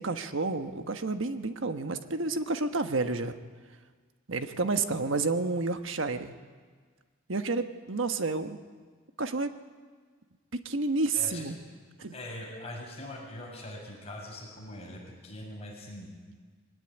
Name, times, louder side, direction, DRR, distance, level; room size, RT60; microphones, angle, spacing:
voice 1, 0.0-3.3 4.3-6.3 7.3-8.6 9.2-9.5 10.5-11.6 12.0-12.1, right 3 dB, 65° right, 8 dB, 1.2 m, -30 dB
voice 2, 11.1-11.4 12.1-16.1, left 1 dB, 30° left, -2 dB, 6.9 m, -42 dB
22.0 x 17.5 x 9.9 m, 1.5 s
head